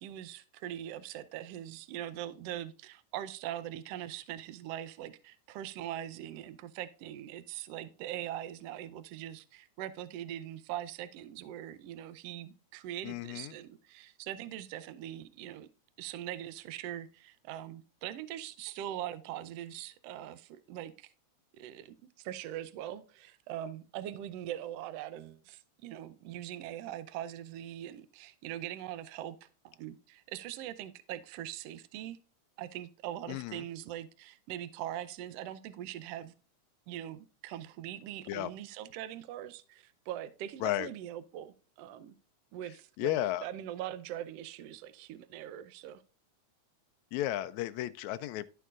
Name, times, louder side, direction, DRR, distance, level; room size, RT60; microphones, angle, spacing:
voice 1, 0.0-15.7 16.0-21.1 21.6-32.2 32.6-36.3 36.9-42.1 42.5-46.0, right 12 dB, 75° right, 1.5 m, -42 dB
voice 2, 13.0-13.5 33.3-33.6 38.3-38.5 40.6-40.9 43.0-43.5 47.1-48.5, left 14 dB, 80° left, 1.9 m, -33 dB
13.0 x 4.6 x 2.4 m
omnidirectional pair, 3.3 m